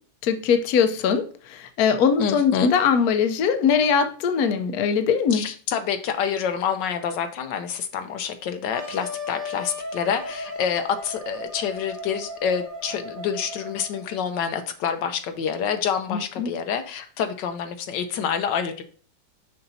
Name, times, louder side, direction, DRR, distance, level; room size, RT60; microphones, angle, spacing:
voice 1, 0.2-5.4 16.1-16.5, left 6 dB, 65° left, 8 dB, 1.1 m, -21 dB
voice 2, 2.2-2.7 5.3-18.8, left 7 dB, 80° left, 7 dB, 1.3 m, -27 dB
Wind instrument woodwind instrument, 8.7-14.2, left 2 dB, 65° right, 2.2 m, -36 dB
6.8 x 5.6 x 2.7 m, 0.43 s
omnidirectional pair, 1.9 m